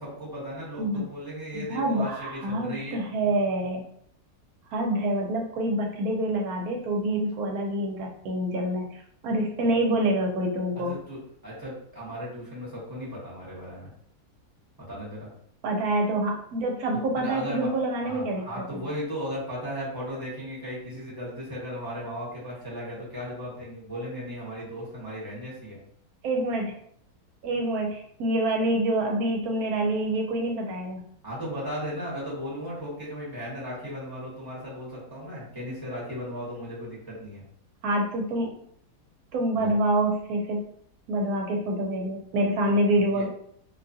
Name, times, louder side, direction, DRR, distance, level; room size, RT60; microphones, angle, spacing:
voice 1, 0.0-3.0 10.8-13.9 14.8-15.3 17.2-17.7 18.0-25.8 31.2-37.4 39.5-39.7 42.9-43.3, equal, 15° right, -7 dB, 0.9 m, -36 dB
voice 2, 1.5-3.8 4.7-11.0 15.6-18.8 26.2-26.7 27.4-31.0 37.8-38.5 39.3-40.6 41.1-43.3, right 1 dB, 75° right, 1 dB, 1.0 m, -26 dB
2.7 x 2.3 x 2.6 m, 0.67 s
omnidirectional pair, 1.7 m